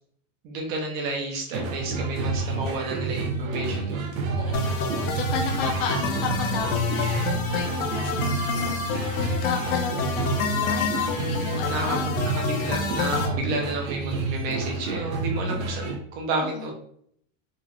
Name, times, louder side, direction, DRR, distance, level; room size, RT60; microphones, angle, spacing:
voice 1, 0.4-4.0 5.6-5.7 11.1-12.0 12.3-16.7, right 3 dB, 25° right, 1 dB, 0.5 m, -31 dB
sound 1, 1.5-16.0, right 3 dB, 90° right, 1.1 m, -29 dB
voice 2, 4.2-12.2 13.1-13.6 16.4-16.7, left 6 dB, 40° left, 3 dB, 0.7 m, -34 dB
sound 2, 4.5-13.3, left 5 dB, 80° left, 0.9 m, -29 dB
3.8 x 2.5 x 3.0 m, 0.68 s
supercardioid pair, 175°, 39 cm